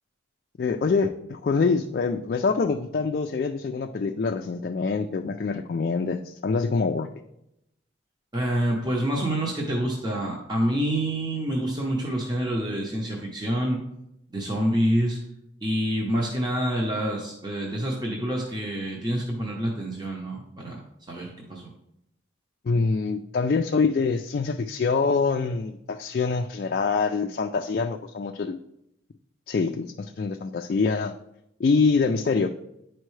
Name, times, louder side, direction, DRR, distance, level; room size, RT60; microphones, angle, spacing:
voice 1, 0.6-7.1 22.7-28.6 29.5-31.1 31.6-32.5, left 4 dB, 50° left, 4 dB, 0.3 m, -25 dB
voice 2, 8.3-13.8 14.3-15.2 15.6-20.8 21.1-21.7, right 1 dB, 20° right, -1 dB, 0.8 m, -27 dB
10.0 x 4.5 x 3.2 m, 0.82 s
head